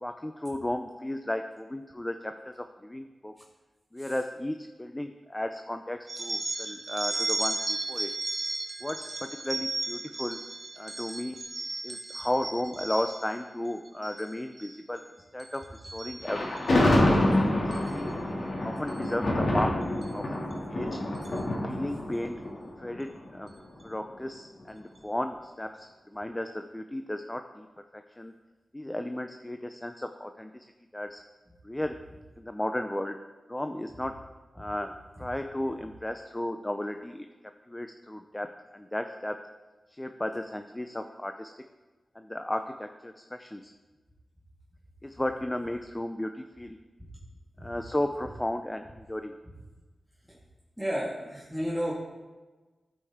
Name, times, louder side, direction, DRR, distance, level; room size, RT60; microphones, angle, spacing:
voice 1, 0.0-3.3 3.9-8.1 8.8-10.4 10.8-11.4 11.8-15.0 15.3-18.1 18.6-19.8 20.1-20.4 20.7-21.0 21.6-22.4 22.8-23.5 23.8-27.7 27.9-28.3 28.7-30.7 30.9-31.2 31.6-32.0 32.4-33.2 33.5-34.1 34.5-34.9 35.2-37.3 37.7-39.4 40.0-41.5 42.2-43.7 45.0-46.8 47.6-49.3, left 1 dB, 20° left, 6 dB, 0.5 m, -34 dB
sound 1, 6.1-13.4 13.9-14.3 14.6-15.0 15.4-16.7 17.7-17.9 18.9-19.1 20.0-20.1 20.5-20.6 21.1-21.4, right 2 dB, 45° right, 1.1 m, -35 dB
Thunder, 16.2-23.4, left 1 dB, 65° left, 2.3 m, -27 dB
voice 2, 50.8-51.9, equal, 5° right, -7 dB, 2.0 m, -32 dB
14.0 x 5.2 x 3.6 m, 1.3 s
cardioid pair, 45°, 0 cm